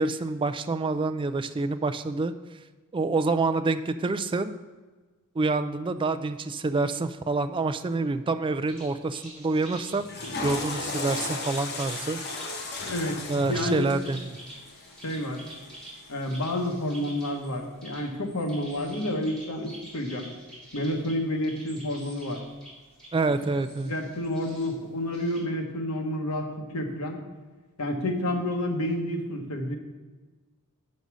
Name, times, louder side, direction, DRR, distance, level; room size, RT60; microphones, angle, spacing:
voice 1, 0.0-2.3 2.9-4.6 5.4-10.0 10.4-12.2 13.3-14.4 23.1-23.9, right 3 dB, 20° right, 11 dB, 0.3 m, -27 dB
sound 1, 8.7-25.4, right 1 dB, 5° left, 2.6 m, -47 dB
Water / Toilet flush, 9.9-16.2, left 3 dB, 45° left, 1.0 m, -35 dB
voice 2, 12.9-13.2 13.5-13.9 15.0-15.4 16.1-20.3 20.7-22.4 23.8-26.5 26.7-27.2 27.8-29.8, left 1 dB, 85° left, 3 dB, 1.2 m, -29 dB
6.9 x 5.2 x 6.2 m, 1.3 s
head